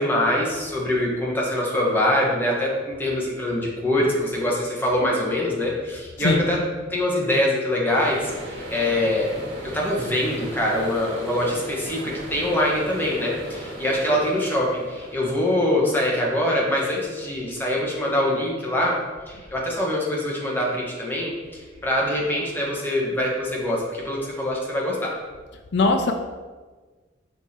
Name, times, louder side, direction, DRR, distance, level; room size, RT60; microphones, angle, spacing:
voice 1, 0.0-6.6 6.9-9.3 9.7-19.0 19.5-25.1, left 1 dB, 10° left, -4 dB, 1.3 m, -24 dB
voice 2, 6.2-6.6 25.7-26.1, left 2 dB, 65° left, 4 dB, 0.5 m, -21 dB
sound 1, 7.9-22.7 23.0-23.5 23.8-25.2, equal, 65° right, 1.6 m, -40 dB
6.2 x 4.6 x 4.3 m, 1.4 s
head